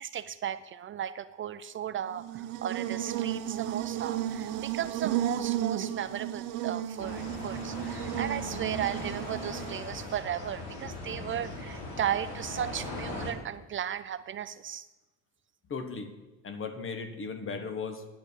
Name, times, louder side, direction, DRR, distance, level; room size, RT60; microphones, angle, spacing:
voice 1, 0.0-14.9, right 10 dB, 40° right, 12 dB, 0.4 m, -35 dB
Buzz, 2.1-10.2, right 12 dB, 70° right, 0.9 m, -34 dB
sound 1, 7.0-13.3, left 2 dB, 80° left, 3.7 m, -39 dB
voice 2, 15.7-16.1 16.4-18.1, left 5 dB, 40° left, 8 dB, 1.5 m, -36 dB
10.5 x 8.7 x 7.1 m, 1.1 s
cardioid pair, 110°, 33 cm